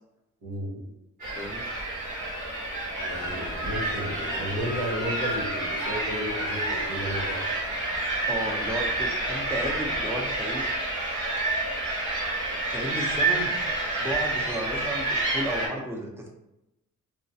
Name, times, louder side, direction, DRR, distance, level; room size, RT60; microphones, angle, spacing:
voice 1, 0.4-0.8 3.0-7.5, equal, 80° right, -5 dB, 1.2 m, -33 dB
sound 1, 1.2-15.7, right 2 dB, 60° right, 1.5 m, -29 dB
sound 2, 3.2-9.3, left 1 dB, 25° left, 1.1 m, -41 dB
voice 2, 8.3-10.6 12.7-13.5 14.0-16.3, right 1 dB, 5° right, -1 dB, 0.7 m, -33 dB
3.1 x 2.2 x 2.8 m, 0.88 s
supercardioid pair, 50°, 34 cm